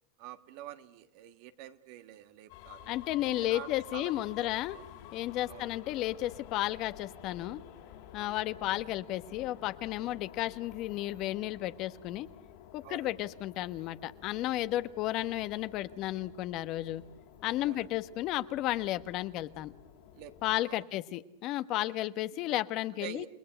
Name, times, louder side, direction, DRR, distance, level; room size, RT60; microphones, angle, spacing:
voice 1, 0.2-4.1 4.7-4.8 5.5-5.7 8.1-8.3 12.8-13.1 17.6-17.9 20.1-20.8 21.7-21.9 23.0-23.3, right 13 dB, 60° right, 10 dB, 1.6 m, -47 dB
sound 1, 2.5-20.6, left 10 dB, 65° left, 3.7 m, -52 dB
voice 2, 2.9-4.8 5.1-7.6 8.1-12.3 12.7-17.0 17.4-19.7 20.4-23.3, left 15 dB, 50° left, 13 dB, 1.1 m, -33 dB
30.0 x 19.0 x 8.1 m, 0.84 s
hypercardioid pair, 110°, 0 cm